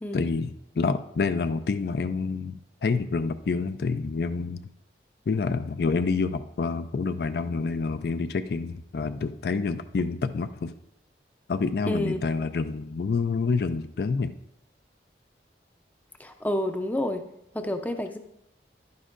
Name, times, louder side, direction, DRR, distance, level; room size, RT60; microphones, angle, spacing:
voice 1, 0.1-4.6 5.3-10.7 11.5-14.3, left 4 dB, 65° left, 11 dB, 0.4 m, -28 dB
voice 2, 11.9-12.2 16.2-17.3 17.5-18.2, left 1 dB, 10° left, 6 dB, 0.5 m, -29 dB
11.0 x 9.6 x 2.5 m, 0.81 s
head